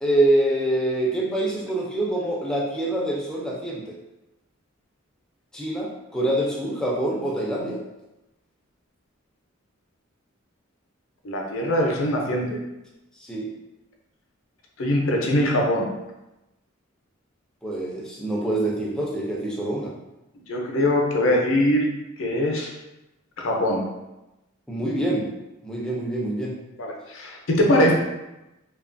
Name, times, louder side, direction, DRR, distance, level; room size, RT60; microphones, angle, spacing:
voice 1, 0.0-4.0 5.5-7.8 13.2-13.5 17.6-19.9 24.7-25.3 25.6-26.6, right 1 dB, 5° left, -4 dB, 0.4 m, -25 dB
voice 2, 11.2-12.6 14.8-15.9 20.5-21.9 22.2-22.7 23.4-23.8 26.8-27.9, left 1 dB, 70° left, 0 dB, 0.5 m, -22 dB
2.8 x 2.3 x 2.5 m, 0.97 s
head